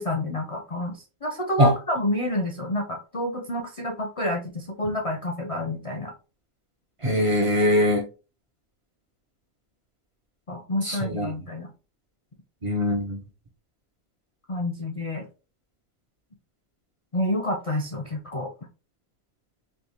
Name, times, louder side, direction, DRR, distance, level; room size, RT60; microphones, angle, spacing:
voice 1, 0.0-6.1 10.5-11.7 14.5-15.3 17.1-18.5, left 1 dB, 50° left, 0 dB, 0.4 m, -29 dB
voice 2, 7.0-8.0 10.8-11.3 12.6-13.2, equal, 50° right, 2 dB, 0.3 m, -21 dB
3.4 x 2.7 x 2.8 m, 0.33 s
omnidirectional pair, 1.4 m